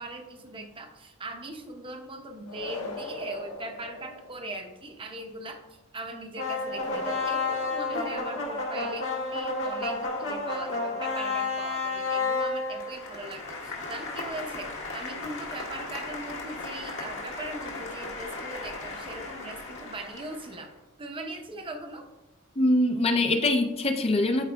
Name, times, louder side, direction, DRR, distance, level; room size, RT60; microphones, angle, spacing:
voice 1, 0.0-5.6 5.9-20.7 21.0-22.1, right 2 dB, 25° right, 4 dB, 0.8 m, -40 dB
sound 1, 2.5-4.5 6.6-8.7, left 2 dB, 90° left, 1.4 m, -39 dB
sound 2, 6.4-20.5, left 3 dB, 65° left, 1.6 m, -33 dB
voice 2, 22.6-24.4, left 1 dB, 25° left, 5 dB, 0.5 m, -23 dB
13.0 x 4.7 x 2.3 m, 1.0 s
head